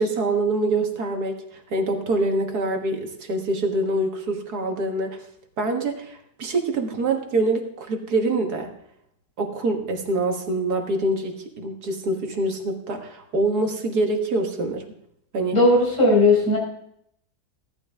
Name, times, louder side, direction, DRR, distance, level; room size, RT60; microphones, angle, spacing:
voice 1, 0.0-1.4 1.7-5.2 5.6-8.7 9.4-14.8 15.3-15.6, right 2 dB, 65° right, 4 dB, 2.1 m, -25 dB
voice 2, 15.5-16.6, left 2 dB, 90° left, -3 dB, 5.8 m, -17 dB
17.0 x 11.5 x 3.6 m, 0.74 s
omnidirectional pair, 1.8 m